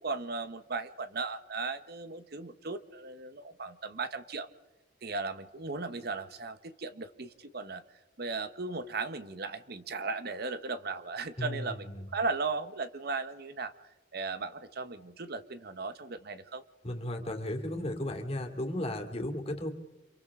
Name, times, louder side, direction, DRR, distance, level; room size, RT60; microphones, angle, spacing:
voice 1, 0.0-4.5 5.0-7.8 8.2-11.9 12.1-13.7 14.1-16.6, right 4 dB, 60° right, 11 dB, 1.1 m, -36 dB
voice 2, 11.4-12.1 16.8-19.7, left 1 dB, 35° left, 4 dB, 2.7 m, -35 dB
29.5 x 26.5 x 3.7 m, 1.1 s
head